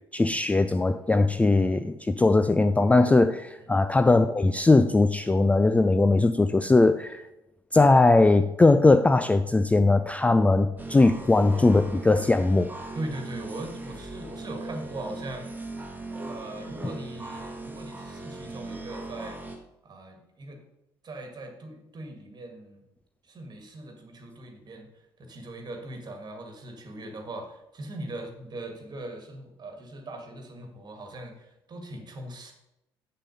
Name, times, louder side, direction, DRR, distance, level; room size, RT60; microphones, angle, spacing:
voice 1, 0.1-7.2 7.7-12.7, left 2 dB, 10° left, 10 dB, 0.4 m, -20 dB
sound 1, 10.8-19.6, right 2 dB, 15° right, 1.5 m, -39 dB
voice 2, 12.9-15.6 16.2-19.4 19.8-20.6 21.0-22.8 23.2-32.5, right 1 dB, 35° right, 4 dB, 1.9 m, -40 dB
7.7 x 6.6 x 5.3 m, 0.89 s
figure-of-eight pair, 50°, 13 cm